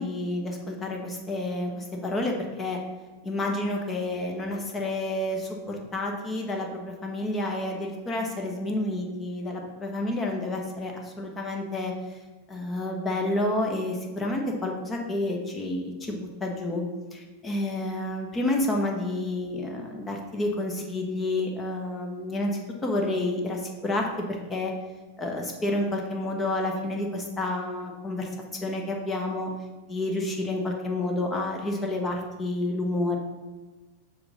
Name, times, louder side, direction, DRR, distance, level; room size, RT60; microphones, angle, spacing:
voice 1, 0.0-2.8 3.2-11.9 12.5-16.8 17.1-24.7 25.2-28.3 28.6-29.5 29.9-33.2, left 2 dB, 20° left, 1 dB, 0.9 m, -29 dB
5.7 x 3.9 x 5.4 m, 1.3 s
figure-of-eight pair, 90°, 0 cm